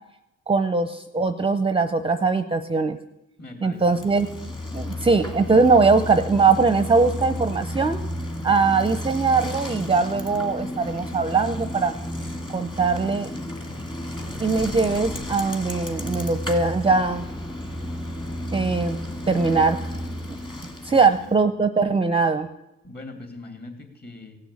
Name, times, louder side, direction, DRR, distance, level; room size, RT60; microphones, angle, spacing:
voice 1, 0.5-3.0 3.6-4.3 4.7-8.0 8.4-11.9 12.5-13.5 14.4-17.3 18.5-19.0 19.3-19.8 20.8-22.5, right 4 dB, 20° right, 10 dB, 0.7 m, -21 dB
voice 2, 3.4-4.0 20.9-21.3 22.8-24.4, left 2 dB, 30° left, 4 dB, 3.5 m, -41 dB
Bicycle, 3.8-21.4, left 1 dB, 15° left, 1.9 m, -32 dB
16.5 x 6.3 x 8.6 m, 0.94 s
cardioid pair, 90°, 30 cm